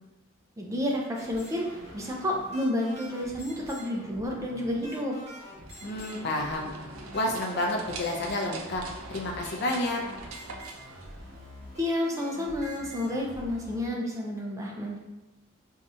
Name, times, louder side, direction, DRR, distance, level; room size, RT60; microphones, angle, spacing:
voice 1, 0.6-5.2 11.8-15.0, left 1 dB, 15° right, -1 dB, 0.4 m, -30 dB
sound 1, 1.2-13.8, equal, 35° right, 1.0 m, -46 dB
sound 2, 5.5-11.7, right 3 dB, 85° right, 0.4 m, -44 dB
voice 2, 5.8-6.7 7.1-8.8 9.1-10.0, left 1 dB, 55° left, 0 dB, 0.5 m, -30 dB
2.7 x 2.4 x 4.1 m, 1.0 s
head